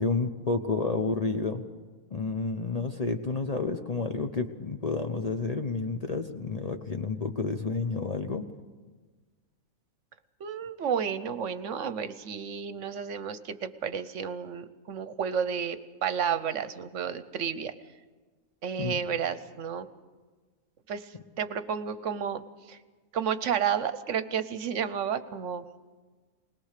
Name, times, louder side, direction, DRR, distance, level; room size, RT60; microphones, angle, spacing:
voice 1, 0.0-1.6 2.1-8.4 18.8-19.0, left 3 dB, 35° left, 6 dB, 0.8 m, -30 dB
voice 2, 10.4-17.7 18.6-19.9 20.9-21.0 21.4-22.8 23.1-25.6, right 7 dB, 65° right, 13 dB, 1.1 m, -31 dB
21.5 x 19.5 x 6.6 m, 1.4 s
omnidirectional pair, 1.4 m